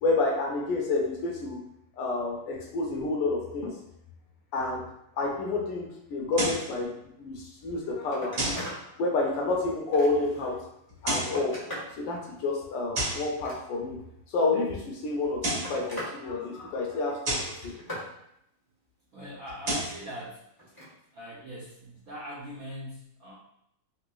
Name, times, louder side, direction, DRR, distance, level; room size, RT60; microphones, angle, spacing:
voice 1, 0.0-1.6 1.9-3.8 4.5-4.8 5.2-8.5 8.9-10.6 11.0-11.6 12.0-14.0 14.3-17.8, left 3 dB, 75° left, -1 dB, 1.2 m, -29 dB
sound 1, 6.3-6.7 8.4-8.7 10.9-11.4 12.9-13.3 15.2-15.8 17.2-17.6 19.5-20.0, right 1 dB, 50° right, 1.3 m, -30 dB
Telephone, 7.6-7.7 8.0-8.8 9.3-10.4 11.0-12.0 13.2-14.0 15.0-16.2 16.5-17.0 17.4-18.1 20.6-20.9 22.3-22.4, equal, 30° left, 0.4 m, -41 dB
voice 2, 19.1-20.5 21.1-23.3, equal, 75° right, -6 dB, 0.8 m, -41 dB
3.9 x 2.6 x 2.3 m, 0.77 s
omnidirectional pair, 2.3 m